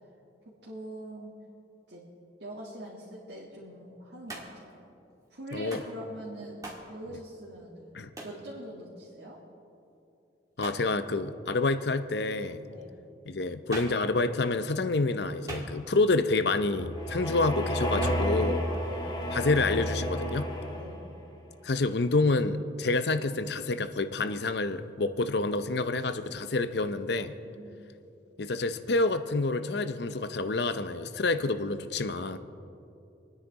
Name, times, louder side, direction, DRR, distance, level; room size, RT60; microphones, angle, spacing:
voice 1, 0.6-1.3 1.9-2.0 2.4-4.7 5.3-9.4 12.7-12.9 18.6-19.0 20.7-21.0 27.4-27.8, right 1 dB, 65° right, -6 dB, 2.1 m, -43 dB
Hands, 4.3-4.7 5.7-6.0 6.6-6.9 8.2-8.4 10.6-10.9 13.7-14.1 15.5-16.1 18.0-18.4, right 1 dB, 20° right, 1.9 m, -41 dB
voice 2, 10.6-12.6 13.3-18.6 19.3-20.5 21.6-27.3 28.4-32.4, left 3 dB, 65° left, 11 dB, 0.7 m, -28 dB
sound 1, 16.5-21.2, equal, 25° left, 1.5 m, -31 dB
26.5 x 9.9 x 4.1 m, 2.7 s
head